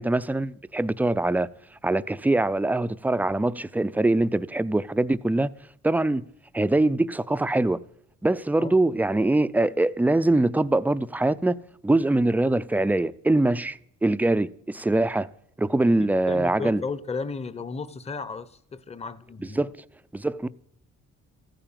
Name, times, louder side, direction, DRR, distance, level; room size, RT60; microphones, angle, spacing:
voice 1, 0.0-1.5 1.8-5.5 5.8-6.2 6.5-7.8 8.2-15.3 15.6-16.8 19.4-19.7 20.1-20.5, right 2 dB, 5° right, 0.4 m, -23 dB
voice 2, 16.3-19.6, left 4 dB, 20° left, 0.8 m, -34 dB
14.5 x 8.9 x 7.5 m
cardioid pair, 90°, 30 cm